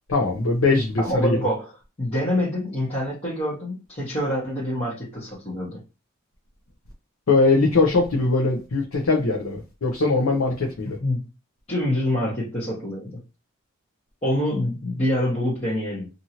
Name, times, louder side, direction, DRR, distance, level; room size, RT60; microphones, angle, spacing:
voice 1, 0.1-1.4 7.3-11.0, left 3 dB, 70° left, 0.6 m, -21 dB
voice 2, 1.0-5.8 10.8-11.2 11.7-13.2 14.2-16.1, left 1 dB, 25° left, 0.9 m, -26 dB
2.7 x 2.6 x 2.8 m
head